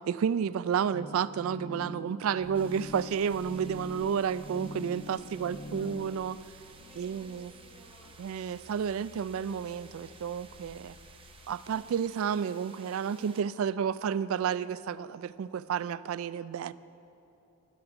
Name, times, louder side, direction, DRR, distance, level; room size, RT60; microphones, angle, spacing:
voice 1, 0.1-6.4 7.0-7.5 8.2-11.0 11.5-16.7, right 7 dB, 70° right, 17 dB, 0.3 m, -31 dB
sound 1, 0.9-6.2, equal, 35° left, 0.6 m, -43 dB
sound 2, 2.4-12.0, left 3 dB, 75° left, 0.6 m, -57 dB
sound 3, 2.5-13.4, right 5 dB, 25° right, 0.7 m, -56 dB
voice 2, 5.0-6.0 6.7-8.3, equal, 10° left, -8 dB, 2.5 m, -55 dB
12.5 x 11.5 x 4.8 m, 2.8 s
head